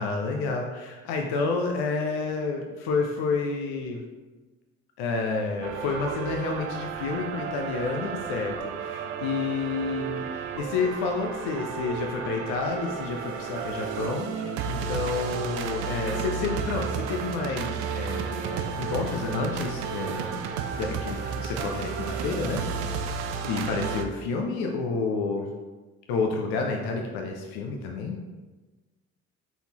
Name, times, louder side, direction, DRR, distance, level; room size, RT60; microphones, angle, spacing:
voice 1, 0.0-4.0 5.0-20.3 20.8-23.0 23.4-25.5 26.1-28.2, left 4 dB, 65° left, 2 dB, 0.6 m, -30 dB
sound 1, 5.6-24.1, right 6 dB, 70° right, 0.5 m, -32 dB
4.0 x 3.9 x 2.9 m, 1.2 s
hypercardioid pair, 45°, 41 cm